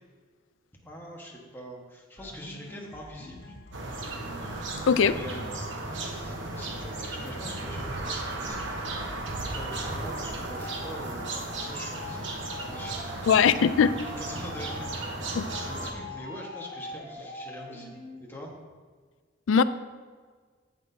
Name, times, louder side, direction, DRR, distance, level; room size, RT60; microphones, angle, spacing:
voice 1, 0.8-3.5 5.1-8.7 9.5-13.4 14.2-15.3 15.6-17.9 18.2-18.5, equal, 10° left, -2 dB, 1.5 m, -43 dB
sound 1, 2.2-18.2, left 2 dB, 65° left, 2.4 m, -44 dB
sound 2, 3.7-15.9, right 2 dB, 70° right, 1.1 m, -35 dB
voice 2, 4.9-5.2 13.3-13.9 15.3-15.5 19.5-19.6, left 6 dB, 80° left, 14 dB, 0.4 m, -20 dB
sound 3, 8.5-10.7, left 1 dB, 55° right, 2.1 m, -50 dB
16.0 x 6.0 x 2.8 m, 1.5 s
head